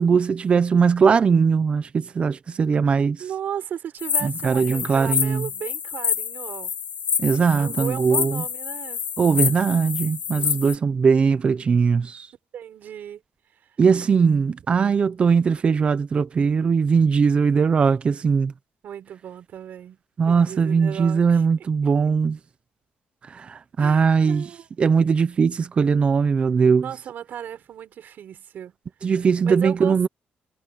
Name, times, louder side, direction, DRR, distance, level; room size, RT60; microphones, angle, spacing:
voice 1, 0.0-3.2 4.2-5.5 7.2-8.4 9.2-12.3 13.8-18.5 20.2-22.4 23.3-24.4 24.8-26.9 29.0-30.1, right 5 dB, 30° right, 0.8 m, -20 dB
voice 2, 3.2-6.7 7.5-9.0 12.5-13.2 18.8-20.0 20.3-21.4 23.8-24.7 25.0-25.2 26.7-28.7 29.4-30.1, right 9 dB, 60° right, 6.0 m, -35 dB
sound 1, 4.0-10.7, left 7 dB, 45° left, 7.0 m, -28 dB
cardioid pair, 160°, 3 cm